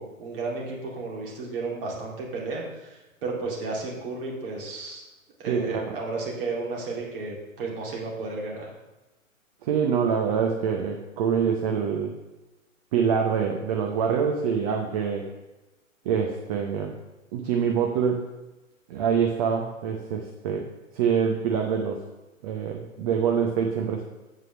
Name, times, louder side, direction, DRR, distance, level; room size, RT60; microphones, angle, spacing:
voice 1, 0.0-5.0 5.4-8.7, right 3 dB, 45° right, -2 dB, 2.5 m, -33 dB
voice 2, 5.5-5.9 9.6-12.1 12.9-15.3 16.0-17.0 17.3-18.2 18.9-20.7 20.9-22.0 22.4-24.0, right 7 dB, 30° right, 2 dB, 0.7 m, -25 dB
8.0 x 4.8 x 6.0 m, 1.0 s
figure-of-eight pair, 120°, 40 cm